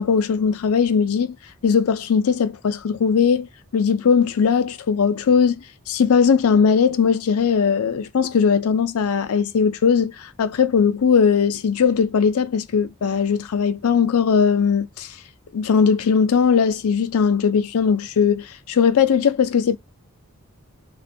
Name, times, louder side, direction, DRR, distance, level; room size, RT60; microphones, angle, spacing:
voice 1, 0.0-1.3 1.6-3.5 3.7-5.6 5.9-15.1 15.5-19.8, left 6 dB, 90° left, 0.4 m, -19 dB
2.4 x 2.1 x 2.6 m
head